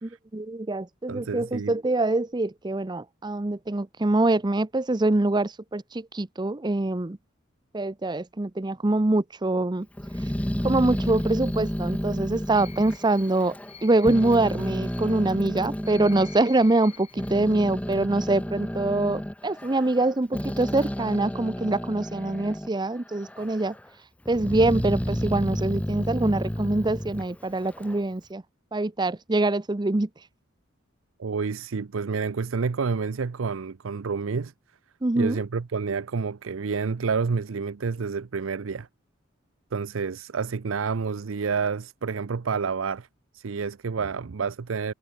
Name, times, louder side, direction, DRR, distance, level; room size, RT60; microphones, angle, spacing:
voice 1, 0.0-7.2 7.7-9.9 10.6-13.6 13.8-23.8 24.3-28.4 28.7-30.1 35.0-35.4, right 2 dB, 20° right, 0.6 m, -24 dB
voice 2, 1.1-1.8 31.2-34.5 35.2-38.9 39.7-43.1 43.3-44.9, right 5 dB, 85° right, 0.6 m, -29 dB
Growling, 10.0-13.7 14.0-16.4 16.9-22.8 23.1-23.8 24.3-28.0, equal, 5° left, 1.1 m, -31 dB
sound 1, 10.9-17.3, left 6 dB, 30° left, 3.0 m, -49 dB
head